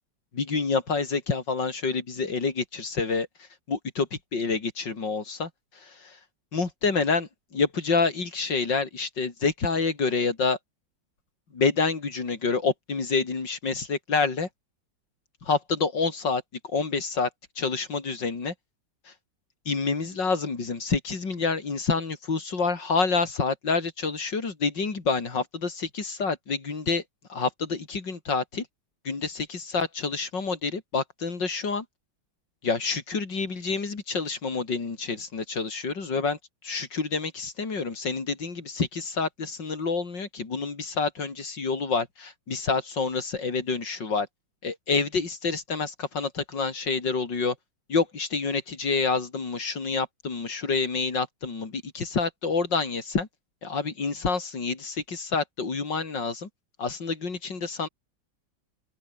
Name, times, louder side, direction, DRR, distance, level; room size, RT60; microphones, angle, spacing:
voice 1, 0.3-3.3 3.7-5.5 6.0-6.2 6.5-10.6 11.5-14.5 15.5-17.3 17.6-18.5 19.7-27.0 27.3-28.7 29.0-31.8 32.6-36.4 36.6-44.3 44.6-47.5 47.9-53.3 53.6-56.5 56.8-57.9, left 4 dB, 65° left, 4.2 m, -28 dB
open air
omnidirectional pair, 2.1 m